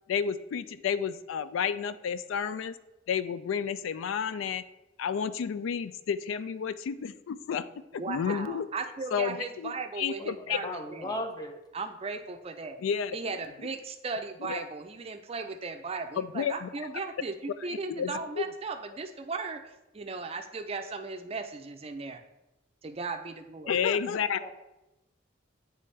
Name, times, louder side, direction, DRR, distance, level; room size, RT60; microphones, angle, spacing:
voice 1, 0.1-2.8 3.1-4.6 5.0-7.7 7.9-8.7 9.1-10.7 12.8-13.2 14.4-14.7 16.2-16.7 17.9-18.1 18.4-18.5 23.7-24.4, left 7 dB, 90° left, 14 dB, 0.3 m, -31 dB
voice 2, 8.0-11.2 11.7-12.8 13.1-22.2 22.8-23.8, right 4 dB, 30° right, 6 dB, 0.4 m, -37 dB
voice 3, 10.2-11.5 24.4-24.5, left 1 dB, 20° left, 4 dB, 0.6 m, -37 dB
9.1 x 3.4 x 3.2 m, 0.96 s
head